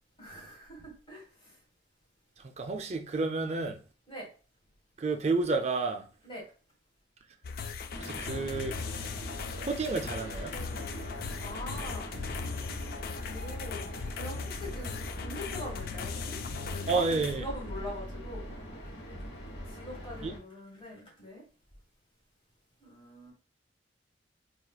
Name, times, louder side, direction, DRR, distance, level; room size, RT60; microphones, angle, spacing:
voice 1, 0.2-1.5 4.1-4.3 6.2-6.4 11.4-12.2 13.2-16.4 16.6-18.5 19.8-21.4 22.8-23.3, left 1 dB, 30° left, 1.6 m, -43 dB
voice 2, 2.4-3.8 5.0-6.1 8.0-8.7 9.6-10.5 16.9-17.4 20.2-20.3, right 3 dB, 40° right, 0.4 m, -30 dB
sound 1, 7.4-17.3, left 5 dB, 55° left, 0.3 m, -39 dB
sound 2, 7.9-20.4, equal, 85° left, 1.0 m, -42 dB
4.2 x 2.4 x 2.3 m
head